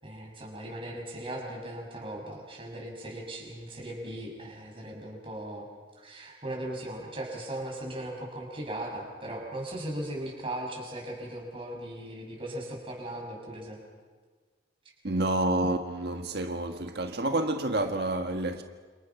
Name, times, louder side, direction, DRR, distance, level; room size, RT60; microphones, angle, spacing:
voice 1, 0.0-5.7 5.9-13.8, right 1 dB, 30° right, 6.8 m, -38 dB
voice 2, 15.0-18.6, right 2 dB, 60° right, 1.6 m, -29 dB
29.5 x 28.0 x 6.0 m
head